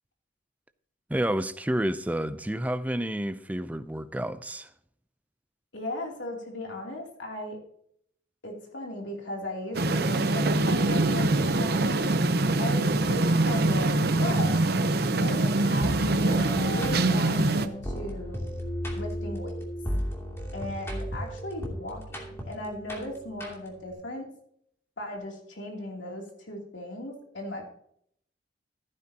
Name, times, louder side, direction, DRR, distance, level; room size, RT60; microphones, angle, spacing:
voice 1, 1.1-4.7, right 1 dB, 10° right, 0.5 m, -30 dB
voice 2, 5.7-7.6 8.4-12.0 12.6-14.6 15.2-18.4 18.9-19.6 20.5-24.3 25.0-27.6, left 1 dB, 80° left, 3.0 m, -37 dB
sound 1, 9.7-17.7, right 2 dB, 55° right, 0.8 m, -24 dB
sound 2, 15.8-23.9, equal, 15° left, 2.8 m, -35 dB
15.5 x 9.6 x 2.9 m
head